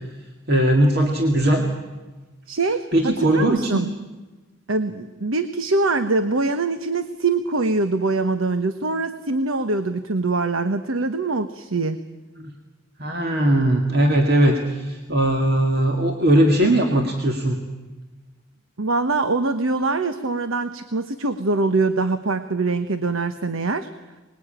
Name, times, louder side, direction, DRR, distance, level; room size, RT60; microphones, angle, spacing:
voice 1, 0.5-1.6 2.9-3.9 12.4-12.5 13.0-17.6, right 1 dB, 50° right, 2 dB, 2.2 m, -19 dB
voice 2, 2.5-3.9 4.7-12.0 18.8-23.9, right 3 dB, 75° right, 9 dB, 1.2 m, -23 dB
26.0 x 20.5 x 9.0 m, 1.2 s
head